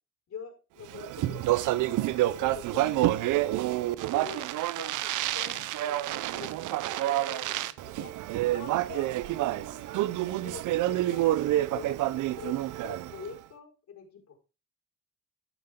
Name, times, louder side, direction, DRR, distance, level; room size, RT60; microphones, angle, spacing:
voice 1, 0.3-3.8 4.1-6.5 6.8-8.1 8.5-10.0 10.4-10.6 10.9-14.4, left 6 dB, 60° left, 1 dB, 5.1 m, -46 dB
Speech, 0.9-13.3, right 15 dB, 85° right, 0.7 m, -28 dB
16.0 x 5.7 x 3.7 m, 0.32 s
cardioid pair, 90°, 30 cm